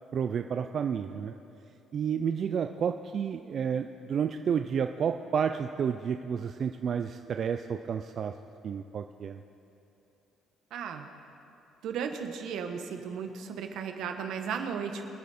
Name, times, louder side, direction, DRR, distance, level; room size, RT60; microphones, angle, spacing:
voice 1, 0.1-1.3 1.9-8.4 8.6-9.4, right 7 dB, 45° right, 7 dB, 0.4 m, -31 dB
voice 2, 10.7-11.1 11.8-15.1, right 6 dB, 70° right, 5 dB, 1.2 m, -35 dB
24.5 x 8.4 x 4.3 m, 2.8 s
cardioid pair, 145°, 0 cm